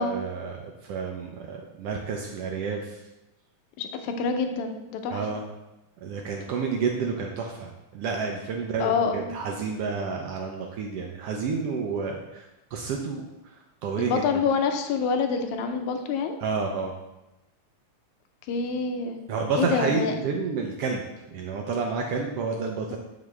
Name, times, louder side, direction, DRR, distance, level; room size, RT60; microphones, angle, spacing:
voice 1, 0.0-3.0 5.1-5.4 6.0-14.2 16.4-16.9 19.3-23.0, right 5 dB, 75° right, 1 dB, 1.4 m, -30 dB
voice 2, 3.8-5.2 8.8-9.3 14.0-16.4 18.5-19.2 19.6-20.1, left 5 dB, 85° left, 6 dB, 2.0 m, -26 dB
7.1 x 6.0 x 3.2 m, 0.97 s
omnidirectional pair, 3.3 m